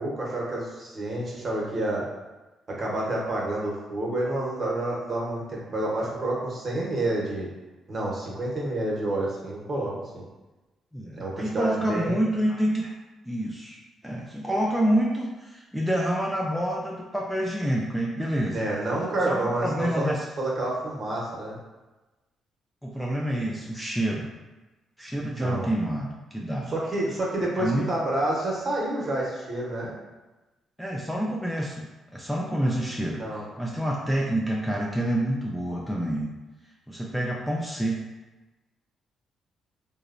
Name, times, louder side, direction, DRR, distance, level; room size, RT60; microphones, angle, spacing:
voice 1, 0.0-2.1 2.7-7.5 7.9-10.3 11.2-12.2 18.5-20.1 20.4-21.6 25.4-25.7 26.7-30.0 33.2-33.5, right 1 dB, 40° right, -4 dB, 0.8 m, -29 dB
voice 2, 10.9-12.9 13.2-13.8 14.0-18.6 19.3-20.3 22.8-24.3 25.0-26.7 27.6-27.9 30.8-31.9 32.1-36.3 36.9-38.0, right 1 dB, ahead, -3 dB, 0.3 m, -27 dB
2.9 x 2.0 x 2.5 m, 1.1 s
cardioid pair, 90°, 0 cm